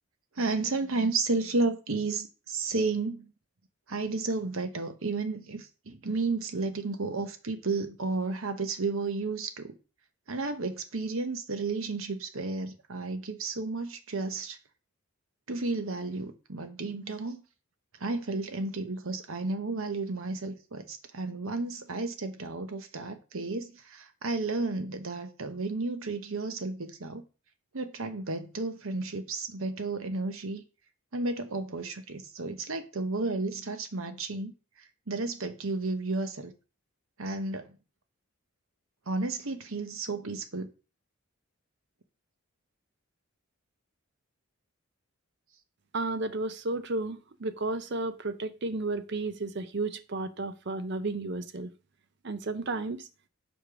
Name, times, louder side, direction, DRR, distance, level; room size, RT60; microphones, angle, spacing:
voice 1, 0.4-3.3 3.9-9.7 10.3-14.6 15.5-17.4 18.0-27.2 27.7-30.6 31.1-34.5 35.1-36.5 37.2-37.8 39.1-40.7, right 3 dB, 70° right, 1.0 m, -32 dB
voice 2, 45.9-51.7 52.2-53.0, right 2 dB, 50° right, 0.6 m, -33 dB
5.3 x 4.9 x 6.1 m
head